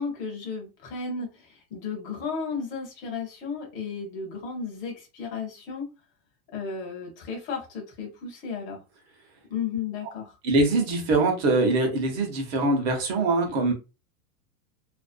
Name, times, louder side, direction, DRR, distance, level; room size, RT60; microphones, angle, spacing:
voice 1, 0.0-5.9 6.5-8.8 9.5-10.4, left 5 dB, 20° left, 0.5 m, -34 dB
voice 2, 10.4-13.7, right 2 dB, 45° right, 0.8 m, -23 dB
2.5 x 2.0 x 2.4 m
supercardioid pair, 165°, 45 cm